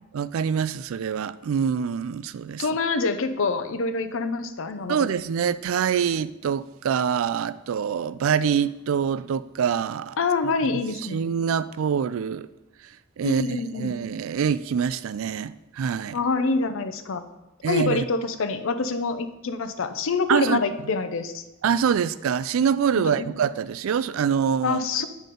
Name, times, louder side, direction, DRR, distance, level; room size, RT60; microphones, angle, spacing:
voice 1, 0.1-2.6 4.9-10.2 11.1-12.5 13.2-16.2 17.6-18.0 20.3-20.6 21.6-24.8, right 7 dB, 75° right, 0.3 m, -25 dB
voice 2, 2.6-5.1 10.2-11.2 13.2-13.9 16.1-17.2 17.7-21.4 23.0-23.3 24.6-25.1, left 4 dB, 70° left, 0.6 m, -26 dB
9.1 x 4.1 x 5.2 m
head